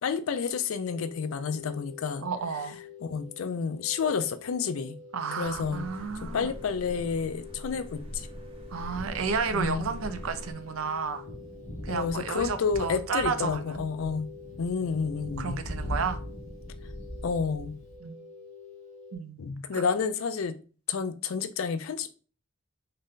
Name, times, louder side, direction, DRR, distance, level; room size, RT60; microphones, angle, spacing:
voice 1, 0.0-2.3 3.0-5.0 5.3-5.9 6.2-8.3 9.5-9.9 11.9-14.3 14.6-15.6 17.2-17.8 19.4-20.6 20.9-22.1, left 5 dB, 80° left, 0.4 m, -30 dB
sound 1, 0.8-19.2, left 5 dB, 35° left, 1.0 m, -48 dB
voice 2, 2.2-2.8 5.1-6.5 8.7-11.2 11.8-13.8 15.4-16.2 18.0-18.2 19.1-19.4 19.7-19.8, right 5 dB, 80° right, 0.5 m, -32 dB
Thunder, 5.4-18.0, equal, 60° left, 0.8 m, -42 dB
sound 2, 5.4-10.5, equal, 30° right, 0.8 m, -42 dB
3.7 x 2.1 x 3.7 m
head